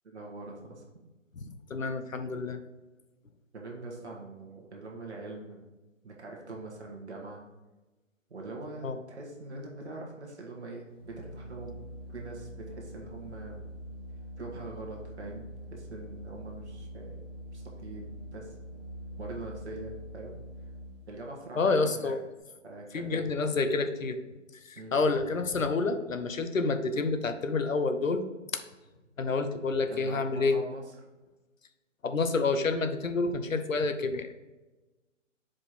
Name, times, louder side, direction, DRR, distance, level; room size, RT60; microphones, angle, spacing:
voice 1, 0.0-1.0 3.5-5.7 6.0-7.4 8.3-11.8 12.1-13.6 14.4-17.2 17.5-18.5 19.2-20.4 21.1-22.1 22.6-23.7 24.7-24.9 29.9-30.8, right 2 dB, 60° right, -1 dB, 1.5 m, -43 dB
voice 2, 1.4-2.6 8.8-9.0 21.6-22.2 22.9-24.2 24.6-28.2 29.2-30.6 32.0-34.3, left 3 dB, 90° left, 8 dB, 0.9 m, -28 dB
Organ, 10.9-21.2, equal, 15° left, 1.2 m, -44 dB
5.1 x 4.4 x 4.3 m, 1.1 s
figure-of-eight pair, 150°, 38 cm